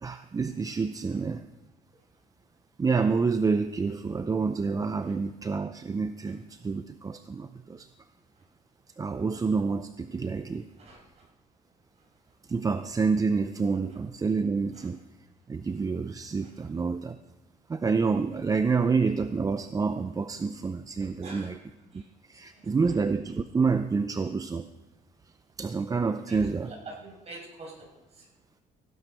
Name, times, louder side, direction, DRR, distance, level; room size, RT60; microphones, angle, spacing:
voice 1, 0.0-1.4 2.8-7.9 9.0-10.7 12.5-15.0 15.5-17.2 17.7-21.6 21.9-22.0 22.3-24.7 25.6-26.7, right 4 dB, 20° right, 10 dB, 0.5 m, -28 dB
voice 2, 21.2-21.5 21.9-22.0 26.3-26.4 26.6-27.9 28.2-28.3, right 2 dB, 40° right, -2 dB, 6.5 m, -44 dB
17.0 x 8.8 x 5.4 m, 1.0 s
cardioid pair, 110°, 17 cm